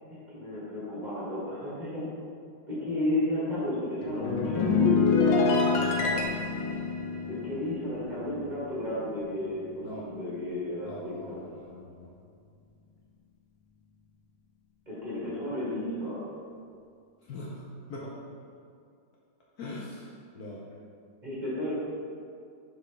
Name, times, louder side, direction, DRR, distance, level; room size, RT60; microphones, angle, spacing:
voice 1, 0.3-2.1 2.7-4.7 7.3-11.3 14.9-16.2 21.2-21.7, left 1 dB, 25° right, -8 dB, 1.6 m, -33 dB
sound 1, 4.0-8.6 8.9-9.2, left 4 dB, 80° left, 1.4 m, -26 dB
voice 2, 5.2-6.2 9.8-10.0 10.8-12.1 17.3-17.6 17.9-18.1 19.6-20.7, left 2 dB, 65° left, -4 dB, 1.1 m, -41 dB
6.9 x 3.8 x 3.9 m, 2.3 s
omnidirectional pair, 2.0 m